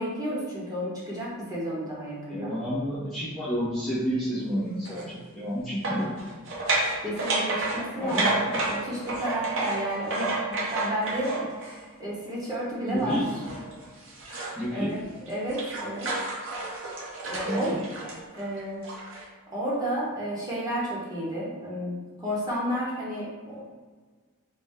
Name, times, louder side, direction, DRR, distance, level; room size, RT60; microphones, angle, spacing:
voice 1, 0.0-2.5 7.0-13.2 14.3-15.0 15.3-16.1 17.2-17.7 18.3-18.8 19.5-23.6, equal, 15° right, -7 dB, 1.0 m, -32 dB
voice 2, 2.3-6.1 8.0-8.6 12.9-13.3 14.5-14.9 17.4-17.8, equal, ahead, -12 dB, 0.8 m, -30 dB
sound 1, 4.8-5.1 5.8-11.8 13.1-14.6 15.0-19.3, right 2 dB, 60° right, 0.8 m, -31 dB
4.2 x 2.2 x 3.6 m, 1.4 s
head